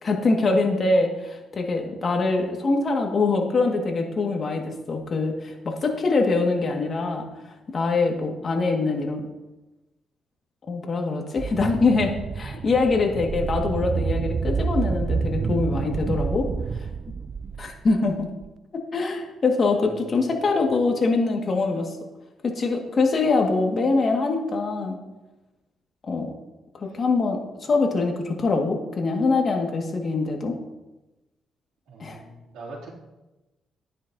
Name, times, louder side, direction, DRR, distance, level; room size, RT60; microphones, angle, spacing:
voice 1, 0.0-7.3 7.7-9.2 10.7-16.5 16.7-16.9 17.6-18.3 18.7-22.0 22.4-25.0 26.0-26.3 26.7-30.6 32.0-32.2, left 3 dB, 45° left, 2 dB, 1.9 m, -24 dB
sound 1, 11.4-18.5, right 5 dB, 45° right, 0.3 m, -28 dB
voice 2, 19.8-20.1 20.6-20.7 26.8-26.9 31.9-32.9, right 3 dB, 90° right, -4 dB, 2.9 m, -42 dB
12.5 x 9.8 x 2.8 m, 1.0 s
cardioid pair, 90°, 0 cm